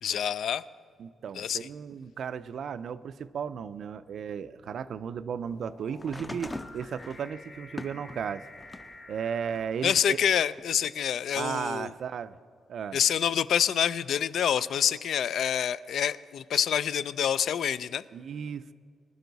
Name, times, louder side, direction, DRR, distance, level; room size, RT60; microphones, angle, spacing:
voice 1, 0.0-0.6 1.3-1.7 9.8-11.9 12.9-18.0, left 9 dB, 65° left, 16 dB, 0.4 m, -27 dB
sound 1, 1.0-1.4 2.2-10.5, left 2 dB, 35° left, 1.3 m, -52 dB
voice 2, 1.0-8.4 9.1-10.2 11.3-12.4 12.7-13.0 18.1-18.7, right 7 dB, 55° right, 15 dB, 0.4 m, -35 dB
sound 2, 6.0-9.0 9.5-10.6 11.7-11.8, left 1 dB, 10° left, 0.5 m, -42 dB
21.0 x 11.5 x 4.0 m, 2.1 s
wide cardioid pair, 160°, 0 cm